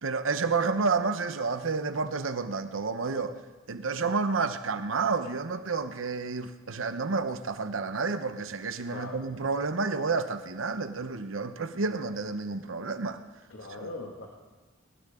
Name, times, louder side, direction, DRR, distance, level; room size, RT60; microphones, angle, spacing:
voice 1, 0.0-3.3 3.7-13.2 13.8-13.9, right 4 dB, 85° right, 0.9 m, -30 dB
voice 2, 13.5-14.3, left 2 dB, 75° left, 2.0 m, -40 dB
20.5 x 18.5 x 3.7 m
head